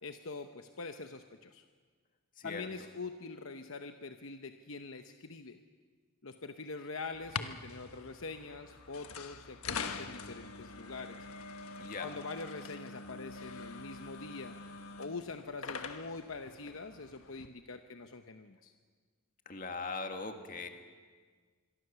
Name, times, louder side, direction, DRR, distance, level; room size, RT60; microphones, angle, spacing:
voice 1, 0.0-1.6 2.4-5.6 6.2-11.2 12.0-14.6 15.0-18.7, left 4 dB, 65° left, 7 dB, 0.9 m, -44 dB
voice 2, 2.4-2.7 11.8-12.1 19.5-20.7, left 4 dB, 40° left, 5 dB, 2.0 m, -40 dB
sound 1, 7.1-17.5, left 5 dB, 80° left, 1.3 m, -44 dB
26.0 x 23.0 x 6.9 m, 1.5 s
head